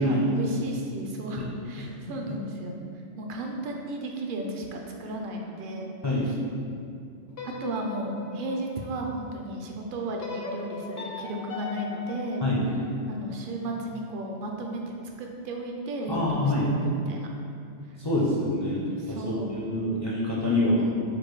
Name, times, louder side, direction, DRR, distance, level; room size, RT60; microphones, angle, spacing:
voice 1, 0.0-2.8 3.2-5.9 6.3-6.4 7.4-12.5 13.1-17.3 19.0-19.5 20.5-21.0, right 1 dB, 60° right, 1 dB, 0.6 m, -34 dB
sound 1, 7.3-9.5 10.2-13.3, left 4 dB, 60° left, 0.8 m, -40 dB
voice 2, 16.1-16.7 18.0-20.8, left 1 dB, 40° left, -6 dB, 0.4 m, -26 dB
4.3 x 2.5 x 4.6 m, 2.4 s
omnidirectional pair, 1.2 m